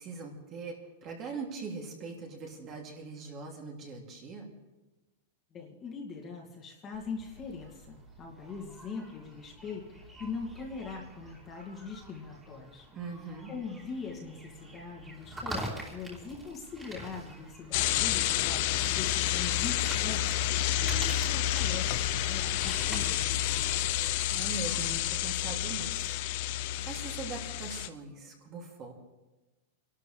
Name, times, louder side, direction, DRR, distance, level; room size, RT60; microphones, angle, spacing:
voice 1, 0.0-4.5 12.9-13.5 24.3-26.2 26.9-28.9, right 4 dB, 30° right, 0 dB, 2.8 m, -41 dB
voice 2, 5.5-12.9 13.5-23.7, left 5 dB, 25° left, -1 dB, 2.3 m, -42 dB
sound 1, 6.9-25.9, right 1 dB, 10° right, 3.2 m, -46 dB
sound 2, 17.7-27.9, left 13 dB, 50° left, 0.6 m, -29 dB
26.5 x 12.5 x 3.4 m, 1.1 s
supercardioid pair, 160°, 0 cm